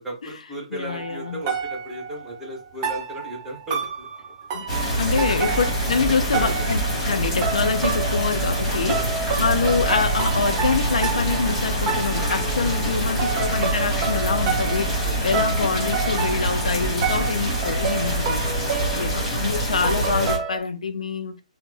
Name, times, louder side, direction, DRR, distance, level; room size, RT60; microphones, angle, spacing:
voice 1, 0.0-4.1 5.1-5.3 6.1-6.5 8.9-9.2 12.8-13.4 15.0-15.1 18.9-19.2, right 1 dB, 5° right, 1.0 m, -36 dB
voice 2, 0.7-1.4 4.5-18.4 19.0-21.4, left 5 dB, 60° left, 0.4 m, -26 dB
sound 1, 0.9-20.6, right 6 dB, 25° right, 0.4 m, -30 dB
sound 2, 4.7-20.4, right 1 dB, 10° left, 1.4 m, -25 dB
3.1 x 2.0 x 3.3 m
figure-of-eight pair, 135°, 4 cm